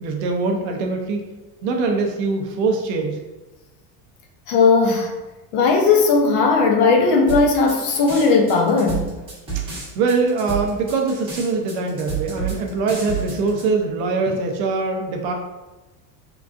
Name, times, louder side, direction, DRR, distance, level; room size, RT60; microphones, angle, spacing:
voice 1, 0.0-1.2 1.6-3.2 9.5-15.3, right 4 dB, 50° right, 2 dB, 0.4 m, -23 dB
voice 2, 4.5-5.1 5.5-9.1, left 4 dB, 60° left, 2 dB, 0.6 m, -17 dB
sound 1, 7.3-13.6, right 7 dB, 15° right, 0.8 m, -29 dB
3.6 x 2.4 x 2.4 m, 1.1 s
cardioid pair, 180°, 41 cm